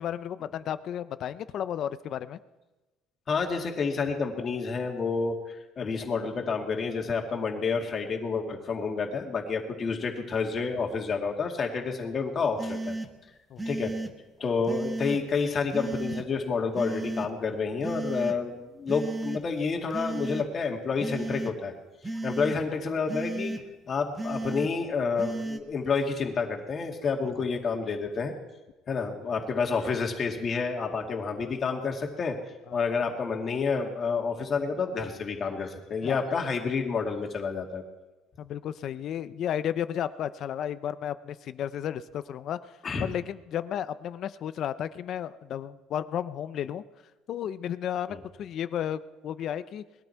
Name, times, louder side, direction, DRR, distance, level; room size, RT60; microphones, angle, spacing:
voice 1, 0.0-2.4 13.5-13.6 32.7-32.9 36.0-36.2 38.4-42.6 43.0-46.8 47.3-49.8, left 10 dB, 50° left, 13 dB, 0.6 m, -33 dB
voice 2, 3.3-13.0 13.7-13.9 14.4-21.7 22.2-23.5 23.9-28.3 28.9-32.4 32.7-37.8 42.8-43.1 48.1-48.2, left 5 dB, 30° left, 2 dB, 2.2 m, -29 dB
sound 1, 12.6-13.1 13.6-14.1 14.7-15.2 15.7-16.2 16.7-17.3 17.8-18.4 18.9-19.4 19.9-20.4 21.0-21.5 22.0-22.6 23.1-23.6 24.2-24.7 25.2-25.6, right 2 dB, 10° right, 1.2 m, -33 dB
20.5 x 13.0 x 4.6 m, 1.1 s
cardioid pair, 140°, 0 cm